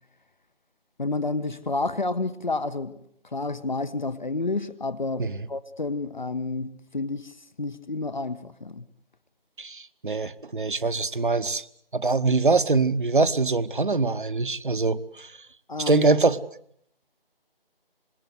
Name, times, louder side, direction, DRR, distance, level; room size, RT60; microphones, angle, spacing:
voice 1, 1.0-3.0 3.3-8.8 15.7-16.1, left 3 dB, 50° left, 1.3 m, -30 dB
voice 2, 9.6-11.7 11.9-15.4 15.8-16.4, right 3 dB, 55° right, 1.2 m, -23 dB
26.0 x 21.0 x 8.1 m
figure-of-eight pair, 160°, 30 cm